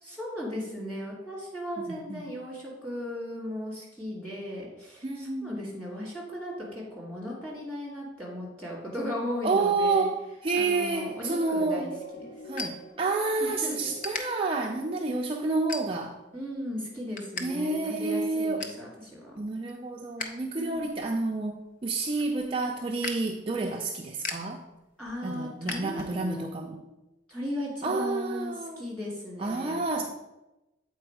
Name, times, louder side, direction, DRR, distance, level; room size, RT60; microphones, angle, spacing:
voice 1, 0.0-10.1 10.5-12.3 13.4-13.9 16.3-19.4 20.5-20.9 23.6-23.7 25.0-26.8 27.3-30.0, left 1 dB, 5° left, -5 dB, 2.4 m, -37 dB
voice 2, 1.9-2.2 5.0-5.6 9.4-11.9 12.5-16.2 17.4-18.6 19.4-24.6 25.2-26.8 27.8-28.8 29.4-30.0, right 3 dB, 30° right, 1 dB, 0.4 m, -29 dB
sound 1, 10.4-17.0 17.6-17.8, right 3 dB, 20° left, 1.4 m, -47 dB
sound 2, 11.4-13.5 14.0-14.2 14.8-15.0 15.7-16.2 16.6-17.5 17.7-17.8 18.2-18.8 19.3-20.4 20.7-26.4, left 4 dB, 45° left, 0.6 m, -39 dB
7.8 x 4.4 x 4.6 m, 0.99 s
head